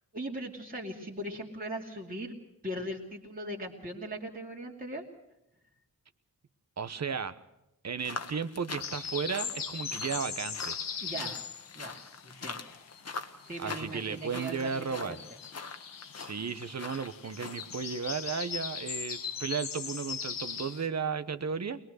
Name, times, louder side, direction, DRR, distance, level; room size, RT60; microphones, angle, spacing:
voice 1, 0.1-2.3 2.6-5.0 11.0-11.4 11.7-12.6 13.4-15.2, right 1 dB, 25° right, -2 dB, 2.5 m, -39 dB
voice 2, 6.8-7.4 7.8-10.8 13.6-15.2 16.2-21.8, right 6 dB, 50° right, 12 dB, 1.2 m, -34 dB
sound 1, 8.0-18.0, left 4 dB, 45° left, 1.3 m, -44 dB
sound 2, 8.8-13.1 13.4-20.9, left 6 dB, 65° left, 1.3 m, -40 dB
22.0 x 20.5 x 6.5 m, 0.87 s
wide cardioid pair, 105°, 35 cm